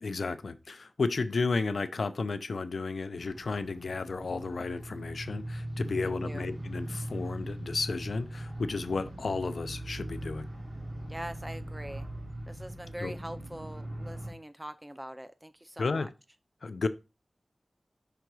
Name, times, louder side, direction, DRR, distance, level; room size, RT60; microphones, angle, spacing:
voice 1, 0.0-10.5 13.0-13.1 15.8-16.1 16.6-16.9, left 4 dB, 85° left, 0.5 m, -33 dB
sound 1, 3.2-14.3, right 1 dB, 80° right, 4.0 m, -40 dB
voice 2, 6.0-6.4 11.1-12.1 12.5-16.1, right 1 dB, 15° right, 0.5 m, -43 dB
5.9 x 3.8 x 4.7 m
wide cardioid pair, 70°, 0 cm